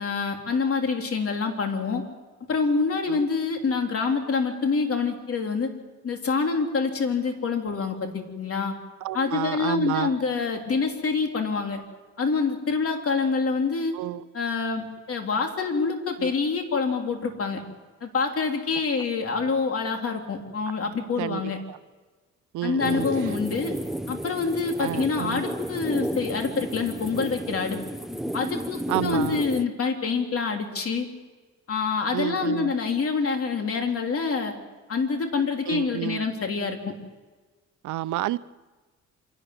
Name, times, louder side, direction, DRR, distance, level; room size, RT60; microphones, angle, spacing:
voice 1, 0.0-2.0 2.5-5.7 6.0-8.7 9.1-11.8 12.2-14.0 14.3-17.6 18.0-21.6 22.6-23.7 24.1-27.8 28.3-31.1 31.7-34.5 34.9-36.9, left 4 dB, 50° left, 3.4 m, -26 dB
voice 2, 9.0-10.1 13.9-14.2 16.2-16.3 21.2-21.4 21.7-21.8 22.5-23.4 24.8-25.4 28.9-29.4 32.1-32.7 35.7-36.3 37.8-38.4, right 15 dB, 75° right, 0.7 m, -30 dB
sound 1, 22.8-29.6, right 1 dB, ahead, 0.9 m, -32 dB
26.5 x 12.0 x 9.5 m
cardioid pair, 90°, 30 cm